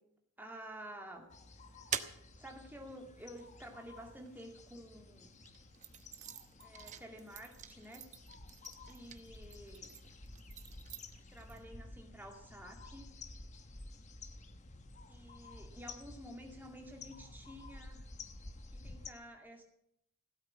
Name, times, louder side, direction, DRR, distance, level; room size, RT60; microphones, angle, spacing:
voice 1, 0.4-1.3 1.9-5.3 6.6-8.2 8.9-9.9 11.3-13.1 15.1-18.1 18.7-19.6, equal, 10° right, 2 dB, 2.3 m, -51 dB
sound 1, 1.2-4.7 5.3-11.6, right 8 dB, 35° right, 0.8 m, -47 dB
sound 2, 1.3-19.1, left 3 dB, 30° left, 1.0 m, -53 dB
16.5 x 8.7 x 8.6 m, 0.75 s
head